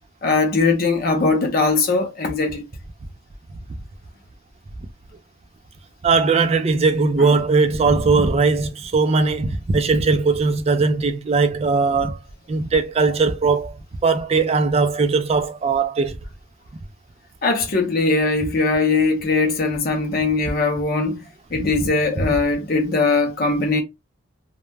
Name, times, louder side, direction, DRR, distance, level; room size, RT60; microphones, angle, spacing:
voice 1, 0.2-2.6 17.4-21.2 21.5-23.8, left 3 dB, 45° left, 0.6 m, -20 dB
voice 2, 6.0-12.2 12.5-13.8 14.0-16.2 22.2-22.3, right 4 dB, 30° right, 0.3 m, -19 dB
2.2 x 2.0 x 3.2 m
head